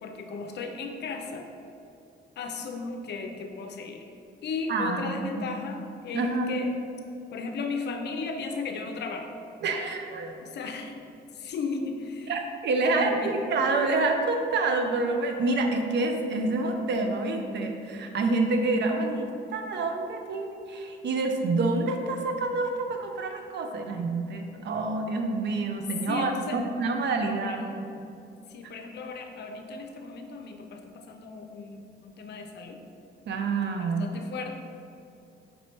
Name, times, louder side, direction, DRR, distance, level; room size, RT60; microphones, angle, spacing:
voice 1, 0.0-1.5 2.4-4.1 4.4-6.7 7.3-9.4 10.4-11.0 11.3-12.3 12.7-13.4 26.1-26.6 27.4-27.7 28.5-32.8 33.7-34.5, left 4 dB, 60° left, 4 dB, 0.5 m, -35 dB
voice 2, 4.7-5.5 6.1-6.6 9.6-10.3 12.3-27.6 33.3-34.2, right 3 dB, 60° right, 4 dB, 0.5 m, -27 dB
5.2 x 3.1 x 2.9 m, 2.6 s
cardioid pair, 90°, 20 cm